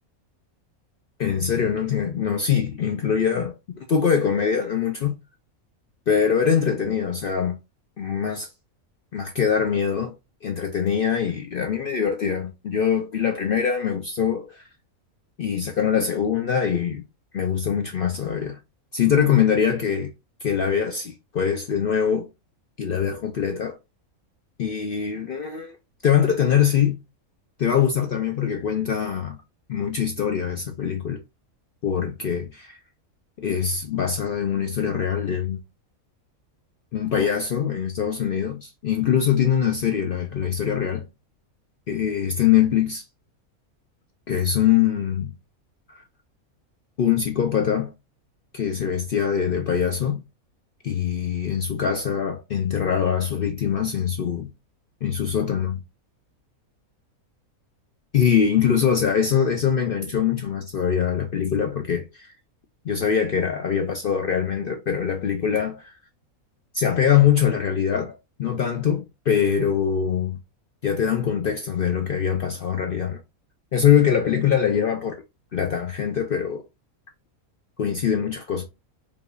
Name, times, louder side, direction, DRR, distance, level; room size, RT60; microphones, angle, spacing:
voice 1, 1.2-5.2 6.1-7.6 8.0-8.5 9.1-10.1 10.4-14.6 15.4-17.0 17.3-18.6 18.9-20.1 20.4-22.3 22.8-23.8 24.6-25.8 26.0-27.0 27.6-29.4 29.7-31.2 31.8-32.8 33.4-35.6 36.9-41.1 41.9-43.0 44.3-45.3 47.0-47.9 48.5-50.2 50.8-54.5 55.0-55.8 58.1-62.3 62.8-65.9 66.7-70.4 70.8-73.2 73.7-75.2 75.5-76.6 77.8-78.6, left 8 dB, 60° left, 0.6 m, -23 dB
4.9 x 2.7 x 2.5 m
omnidirectional pair, 1.5 m